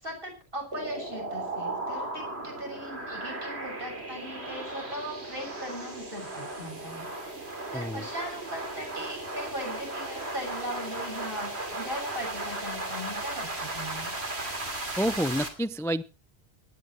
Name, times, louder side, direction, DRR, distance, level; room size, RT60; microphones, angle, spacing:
voice 1, 0.0-14.1, equal, 55° right, 1 dB, 7.1 m, -39 dB
sound 1, 0.7-15.5, right 2 dB, 75° right, 3.2 m, -36 dB
voice 2, 7.7-8.0 15.0-16.0, equal, 5° left, 14 dB, 0.3 m, -28 dB
24.5 x 11.0 x 3.1 m, 0.32 s
omnidirectional pair, 1.1 m